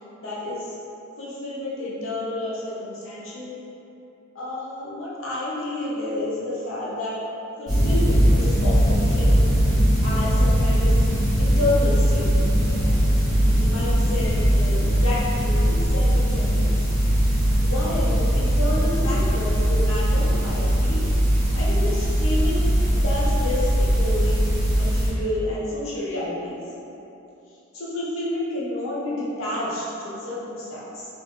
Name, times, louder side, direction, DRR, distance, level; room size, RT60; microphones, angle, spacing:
voice 1, 0.2-0.8 1.2-3.5 4.3-7.2 7.6-9.5 10.0-11.0 11.4-12.3 12.7-12.9 13.4-16.7 17.6-21.0 21.5-26.6 27.7-31.1, left 2 dB, 75° left, -7 dB, 0.8 m, -30 dB
sound 1, 7.7-25.1, equal, 20° right, 1.0 m, -20 dB
3.0 x 2.6 x 3.6 m, 2.9 s
head